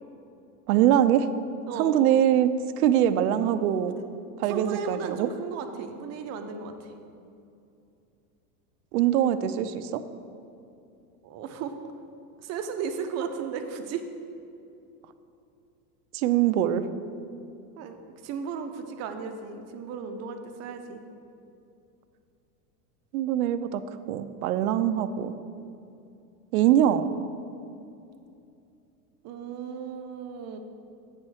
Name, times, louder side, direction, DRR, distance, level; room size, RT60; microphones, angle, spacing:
voice 1, 0.7-1.3 1.8-2.5 2.8-4.0 4.4-5.3 8.9-10.0 16.1-16.8 23.1-23.8 24.1-25.3 26.5-27.1, right 11 dB, 70° right, 11 dB, 0.6 m, -23 dB
voice 2, 4.5-6.9 11.2-11.7 12.4-14.0 17.7-18.0 18.2-21.0 29.2-30.6, right 6 dB, 35° right, 6 dB, 0.7 m, -35 dB
8.5 x 4.4 x 6.3 m, 2.6 s
supercardioid pair, 130°, 45 cm